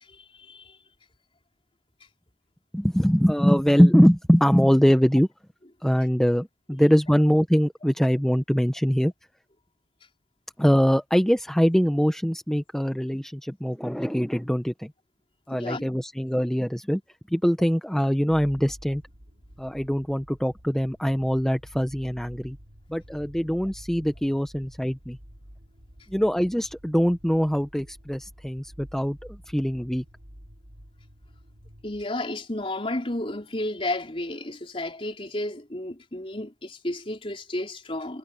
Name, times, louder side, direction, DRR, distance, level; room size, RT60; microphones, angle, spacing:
voice 1, 2.7-5.3 5.8-9.1 10.6-14.9 15.5-17.0 17.3-19.0 19.6-22.6 22.9-25.2 26.1-30.0, equal, 5° left, 0.7 m, -22 dB
voice 2, 15.5-15.9 31.8-38.2, left 1 dB, 30° left, 4.0 m, -32 dB
sound 1, 18.3-32.0, equal, 70° right, 4.6 m, -49 dB
head